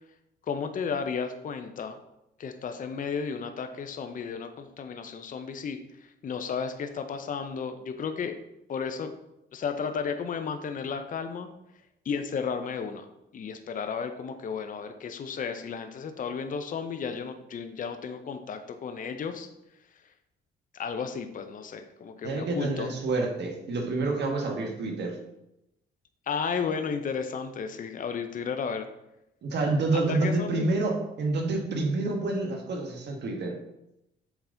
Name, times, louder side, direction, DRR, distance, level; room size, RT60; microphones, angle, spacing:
voice 1, 0.5-2.0 2.4-8.4 8.7-9.1 9.5-11.5 12.1-13.1 13.3-19.5 20.7-22.9 26.3-28.9 29.9-30.7, left 6 dB, 40° left, 7 dB, 0.6 m, -33 dB
voice 2, 22.2-25.1 29.4-33.5, right 2 dB, 60° right, 2 dB, 1.5 m, -28 dB
7.0 x 3.9 x 3.8 m, 0.87 s
cardioid pair, 90°, 20 cm